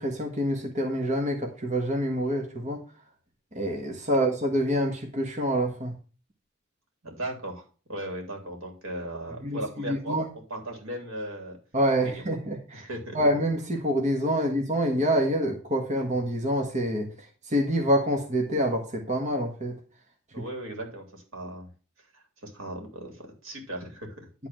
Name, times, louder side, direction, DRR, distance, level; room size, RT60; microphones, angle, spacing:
voice 1, 0.0-2.8 3.5-5.9 9.4-10.3 11.7-12.9 13.1-19.8, equal, 35° right, 2 dB, 1.4 m, -26 dB
voice 2, 7.0-7.6 7.9-11.6 12.0-12.2 12.7-13.2 20.3-21.7 22.1-24.3, right 1 dB, 90° right, 2 dB, 3.3 m, -37 dB
11.0 x 4.0 x 7.4 m, 0.36 s
head